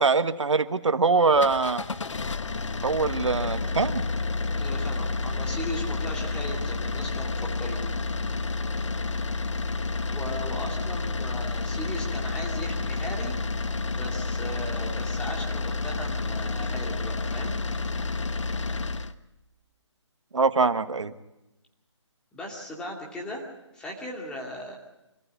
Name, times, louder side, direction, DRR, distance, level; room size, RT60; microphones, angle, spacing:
voice 1, 0.0-1.8 2.8-4.0 20.3-21.1, right 4 dB, 75° right, 10 dB, 1.5 m, -23 dB
sound 1, 1.2-19.1, left 3 dB, 75° left, 1.2 m, -30 dB
voice 2, 4.6-7.9 10.1-17.6 22.3-23.4 23.7-24.8, left 1 dB, 5° left, -2 dB, 2.7 m, -38 dB
26.0 x 14.5 x 8.4 m, 0.95 s
hypercardioid pair, 165°, 16 cm